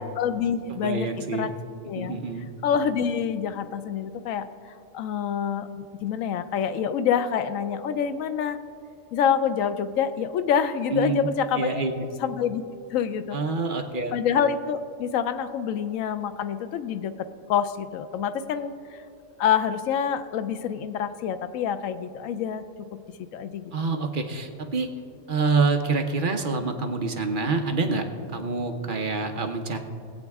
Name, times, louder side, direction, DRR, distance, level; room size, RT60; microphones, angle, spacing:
voice 1, 0.0-1.5 1.8-2.2 2.6-4.4 4.9-8.6 9.1-11.8 12.2-12.6 12.9-13.4 14.1-19.0 19.4-22.6 23.3-23.7, left 8 dB, 85° left, 11 dB, 1.0 m, -27 dB
voice 2, 0.7-1.5 1.9-2.5 10.9-11.3 11.5-12.1 13.3-14.1 23.7-24.9 25.3-29.8, right 3 dB, 45° right, 5 dB, 0.9 m, -26 dB
20.0 x 8.2 x 3.5 m, 2.4 s
omnidirectional pair, 1.4 m